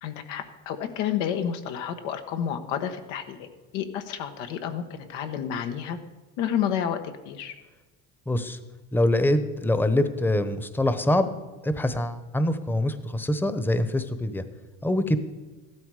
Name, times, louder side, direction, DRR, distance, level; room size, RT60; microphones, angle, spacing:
voice 1, 0.0-6.0 6.4-7.5, left 9 dB, 90° left, 7 dB, 1.4 m, -30 dB
voice 2, 8.3-8.6 8.9-11.3 11.6-14.4 14.8-15.2, left 1 dB, 5° left, 11 dB, 0.9 m, -24 dB
14.0 x 12.0 x 4.8 m, 1.3 s
supercardioid pair, 105°, 35 cm